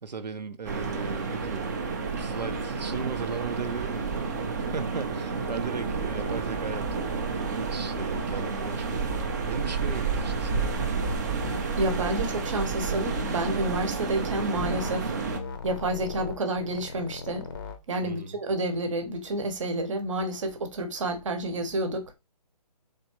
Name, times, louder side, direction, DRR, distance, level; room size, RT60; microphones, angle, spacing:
voice 1, 0.0-1.7 2.2-9.1 9.5-10.8 18.0-18.4, right 5 dB, 85° right, 0.7 m, -37 dB
sound 1, 0.6-15.4, right 4 dB, 25° right, 0.5 m, -30 dB
sound 2, 11.4-11.6 11.9-12.1 13.2-13.9 14.6-15.0 15.3-17.8, left 5 dB, 30° left, 0.6 m, -37 dB
voice 2, 11.8-15.1 15.6-17.5 17.9-22.1, right 1 dB, 50° right, 1.0 m, -29 dB
3.7 x 3.5 x 3.0 m
hypercardioid pair, 155°, 21 cm